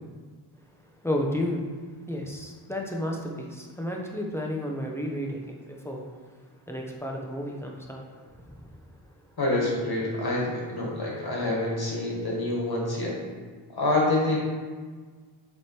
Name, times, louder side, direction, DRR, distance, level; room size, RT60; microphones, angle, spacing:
voice 1, 1.0-1.6 2.1-6.0 6.7-8.1 8.3-8.7, left 1 dB, 5° left, -1 dB, 0.8 m, -32 dB
voice 2, 9.4-13.1 13.7-14.4, left 2 dB, 50° left, -3 dB, 1.7 m, -27 dB
7.4 x 3.3 x 4.5 m, 1.5 s
wide cardioid pair, 120°, 50 cm